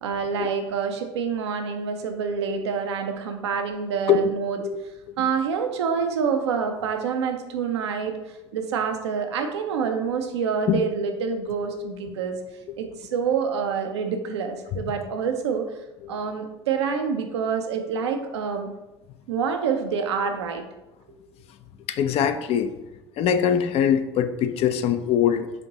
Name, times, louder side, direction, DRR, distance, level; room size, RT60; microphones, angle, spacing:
voice 1, 0.0-4.6 5.2-8.2 8.5-12.4 12.8-15.7 16.1-18.7 19.3-20.6, right 6 dB, 80° right, 5 dB, 0.6 m, -27 dB
voice 2, 21.9-22.7 23.2-25.5, left 8 dB, 45° left, 10 dB, 0.4 m, -23 dB
4.4 x 2.5 x 3.9 m, 1.0 s
hypercardioid pair, 70°, 14 cm